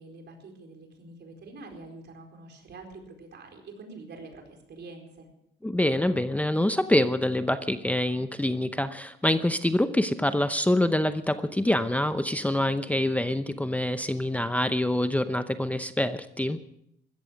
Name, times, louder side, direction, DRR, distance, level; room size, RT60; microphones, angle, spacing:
voice 1, 0.0-5.3, right 3 dB, 60° right, 3 dB, 4.5 m, -46 dB
voice 2, 5.6-16.6, left 1 dB, 5° left, 10 dB, 0.8 m, -26 dB
15.5 x 14.0 x 6.4 m, 0.77 s
cardioid pair, 90°, 20 cm